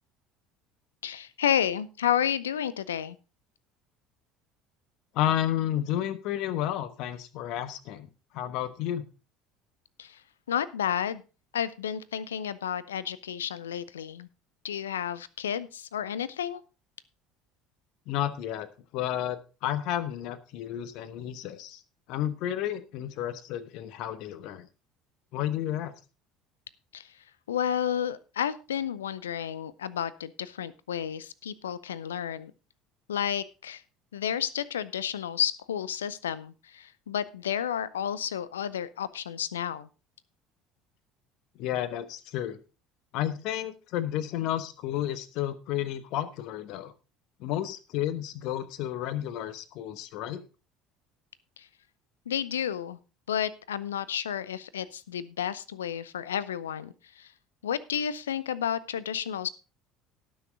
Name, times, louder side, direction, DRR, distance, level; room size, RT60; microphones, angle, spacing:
voice 1, 1.0-3.2 10.0-10.2 10.5-11.2 11.5-14.3 14.6-16.6 26.9-27.1 27.5-32.5 33.1-33.8 34.1-39.9 51.6-51.7 52.3-53.0 53.3-57.3 57.6-59.5, left 9 dB, 75° left, 19 dB, 0.6 m, -31 dB
voice 2, 5.1-8.1 8.3-9.1 18.1-21.8 22.1-24.7 25.3-25.9 41.6-42.6 43.1-46.9 47.4-50.4, left 12 dB, 55° left, 14 dB, 1.2 m, -31 dB
18.5 x 6.4 x 3.7 m, 0.32 s
figure-of-eight pair, 60°, 0 cm